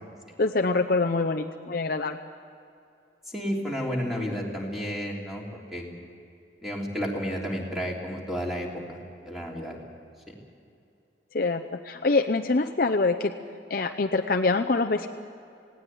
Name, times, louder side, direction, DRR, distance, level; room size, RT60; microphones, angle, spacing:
voice 1, 0.4-2.2 11.3-13.3 13.7-15.1, left 3 dB, 50° left, 5 dB, 0.7 m, -25 dB
voice 2, 3.3-5.8 6.6-9.8 10.3-10.4, equal, ahead, -2 dB, 3.2 m, -32 dB
19.0 x 17.5 x 9.4 m, 2.5 s
head